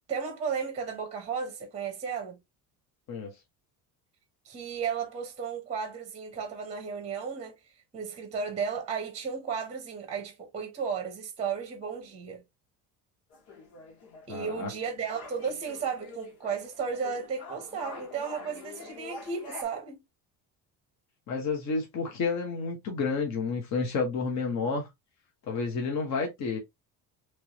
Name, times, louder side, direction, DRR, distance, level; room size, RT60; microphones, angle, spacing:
voice 1, 0.1-2.4 4.5-7.6 7.9-12.4 14.3-20.0, right 6 dB, 15° right, 0.8 m, -34 dB
sound 1, 13.3-19.6, left 3 dB, 85° left, 1.5 m, -46 dB
voice 2, 14.3-14.7 21.3-24.9 25.5-26.6, left 4 dB, 45° left, 1.0 m, -30 dB
3.3 x 3.1 x 2.8 m
cardioid pair, 170°, 37 cm